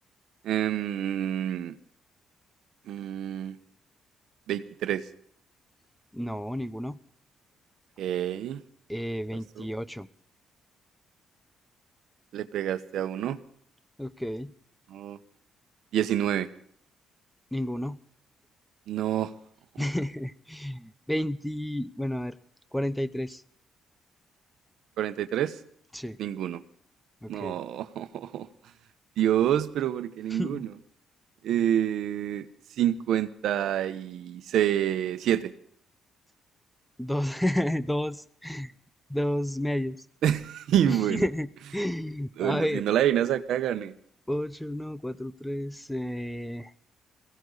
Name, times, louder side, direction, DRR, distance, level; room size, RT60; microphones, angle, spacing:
voice 1, 0.4-1.7 2.9-3.6 4.5-5.0 8.0-8.6 9.6-9.7 12.3-13.4 14.9-15.2 15.9-16.5 18.9-19.3 25.0-25.6 26.2-26.6 27.3-28.5 29.2-30.7 31.4-32.5 32.8-35.5 40.2-41.2 42.4-43.9, right 11 dB, 80° right, 1.0 m, -27 dB
voice 2, 6.1-7.0 8.9-10.1 14.0-14.5 17.5-18.0 19.8-22.3 22.7-23.4 25.9-26.2 27.2-27.6 30.3-30.6 37.0-38.7 39.1-40.0 40.9-42.8 44.3-46.7, equal, 5° left, 0.8 m, -31 dB
22.0 x 16.5 x 4.0 m
cardioid pair, 90°, 0 cm